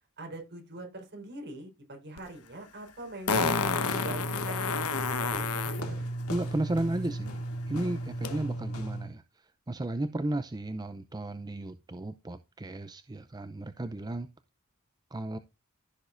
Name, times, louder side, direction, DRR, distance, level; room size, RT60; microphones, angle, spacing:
voice 1, 0.2-3.6 3.9-6.1, right 2 dB, 50° right, 4.4 m, -43 dB
Fart, 2.2-2.3 3.3-5.8 8.2-8.3, left 5 dB, 85° left, 1.1 m, -29 dB
sound 1, 3.3-9.1, right 1 dB, 70° left, 2.5 m, -35 dB
voice 2, 6.3-14.3 15.1-15.4, right 1 dB, 20° right, 0.5 m, -34 dB
14.5 x 7.1 x 2.5 m
head